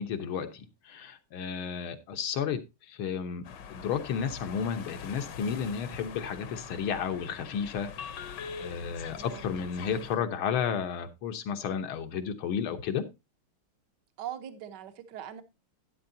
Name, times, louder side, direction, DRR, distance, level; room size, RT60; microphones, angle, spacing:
voice 1, 0.0-2.6 2.9-3.4 3.7-7.9 8.6-13.0, left 7 dB, 80° left, 1.9 m, -32 dB
sound 1, 3.4-10.2, left 7 dB, 65° left, 1.5 m, -43 dB
voice 2, 14.2-15.4, right 10 dB, 60° right, 1.5 m, -41 dB
12.0 x 9.7 x 2.7 m
omnidirectional pair, 2.3 m